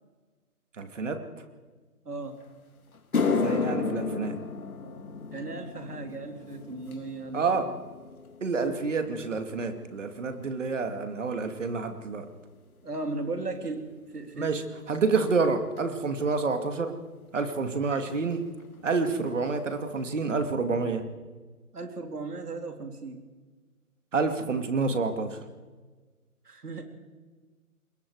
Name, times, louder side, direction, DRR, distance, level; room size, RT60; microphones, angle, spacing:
voice 1, 0.8-1.3 3.2-4.4 7.3-7.7 8.4-12.3 14.4-17.0 17.3-18.4 18.8-21.0 24.1-25.4, right 4 dB, 55° right, 8 dB, 2.5 m, -28 dB
voice 2, 2.1-2.4 5.3-7.7 12.8-14.6 21.7-23.2 26.5-26.8, right 3 dB, 85° right, 5 dB, 3.5 m, -36 dB
sound 1, 2.4-2.5 2.9-11.4 11.7-12.2 12.9-13.0 15.8-15.9 17.5-17.6 17.8-18.0 18.3-18.8 19.3-19.4 19.9-20.0, left 4 dB, 70° left, 2.9 m, -33 dB
26.0 x 21.5 x 4.9 m, 1.4 s
hypercardioid pair, 165°, 45 cm